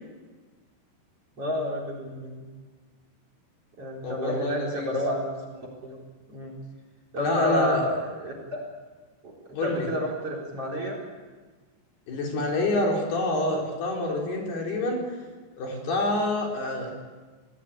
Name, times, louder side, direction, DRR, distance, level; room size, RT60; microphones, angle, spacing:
voice 1, 1.4-2.4 3.8-6.0 6.3-6.6 7.1-8.6 9.2-11.0, left 1 dB, 30° right, 1 dB, 4.7 m, -30 dB
voice 2, 4.0-4.9 7.2-7.8 9.6-9.9 12.1-15.2 15.6-16.9, left 2 dB, 60° left, -1 dB, 6.2 m, -27 dB
25.5 x 18.0 x 8.7 m, 1.4 s
omnidirectional pair, 5.4 m